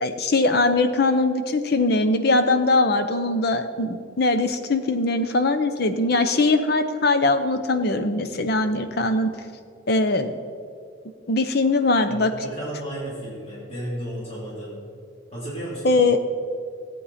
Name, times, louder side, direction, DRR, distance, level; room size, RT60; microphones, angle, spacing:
voice 1, 0.0-9.3 9.9-10.3 11.3-12.3 15.8-16.2, left 2 dB, 55° left, 9 dB, 0.7 m, -21 dB
voice 2, 12.1-14.8 15.3-16.1, right 1 dB, 30° left, -7 dB, 3.1 m, -33 dB
15.5 x 8.5 x 4.2 m, 2.3 s
head